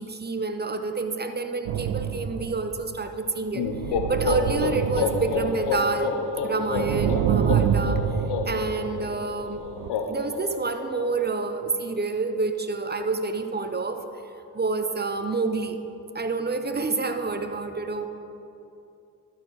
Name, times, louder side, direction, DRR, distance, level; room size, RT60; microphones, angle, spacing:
voice 1, 0.0-3.7 4.1-9.6 10.1-14.0 14.5-15.8 16.1-18.1, right 3 dB, 25° right, 8 dB, 0.9 m, -28 dB
sound 1, 1.7-3.0 3.6-6.1 6.4-9.3 9.6-9.9, right 9 dB, 80° right, 0.5 m, -27 dB
sound 2, 3.5-11.3, left 4 dB, 75° left, 0.9 m, -29 dB
12.0 x 4.9 x 6.1 m, 2.7 s
supercardioid pair, 45°, 41 cm